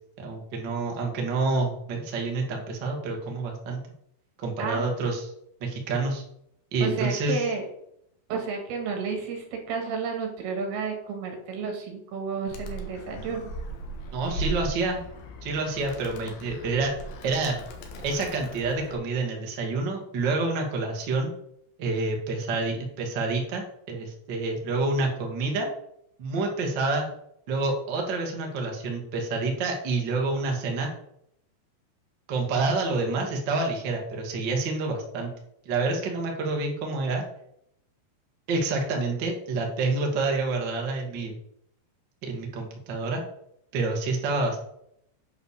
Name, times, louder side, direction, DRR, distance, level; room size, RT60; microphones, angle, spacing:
voice 1, 0.2-3.8 4.4-5.3 5.6-6.2 6.7-7.4 14.1-15.0 15.4-16.9 17.2-17.6 18.0-21.3 21.8-25.7 26.2-27.1 27.5-30.9 32.3-35.3 35.6-37.2 38.5-41.3 42.2-43.2 43.7-44.6, right 3 dB, 85° right, 1 dB, 0.9 m, -28 dB
voice 2, 4.6-4.9 6.8-7.7 8.3-13.5, right 5 dB, 60° right, 3 dB, 3.4 m, -31 dB
Animal, 12.5-19.0, right 1 dB, 65° left, 2.6 m, -38 dB
8.8 x 5.7 x 6.8 m, 0.73 s
omnidirectional pair, 5.6 m